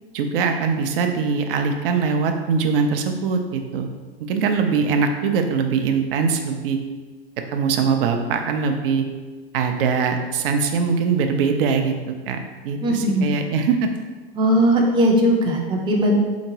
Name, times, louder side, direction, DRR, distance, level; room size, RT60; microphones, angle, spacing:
voice 1, 0.1-3.9 4.3-6.8 7.5-9.0 9.5-12.4 12.6-13.9, right 5 dB, 65° right, 5 dB, 0.5 m, -22 dB
voice 2, 12.8-13.3 14.4-16.1, equal, 15° right, 0 dB, 0.5 m, -18 dB
3.5 x 2.9 x 2.8 m, 1.3 s
hypercardioid pair, 90°, 30 cm